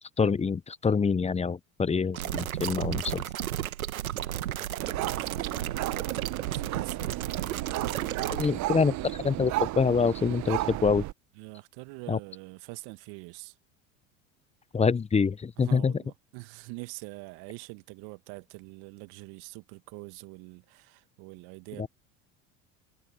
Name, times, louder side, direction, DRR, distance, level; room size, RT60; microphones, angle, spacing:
voice 1, 0.2-3.2 8.3-11.0 12.1-12.2 14.7-15.9 21.8-21.9, left 5 dB, 15° left, 0.8 m, -26 dB
sound 1, 2.1-8.5, right 12 dB, 80° right, 1.5 m, -33 dB
voice 2, 4.0-8.7 11.4-13.5 15.6-21.9, right 29 dB, 60° right, 1.9 m, -45 dB
sound 2, 4.8-11.1, right 16 dB, 45° right, 1.0 m, -34 dB
hypercardioid pair, 75°, 41 cm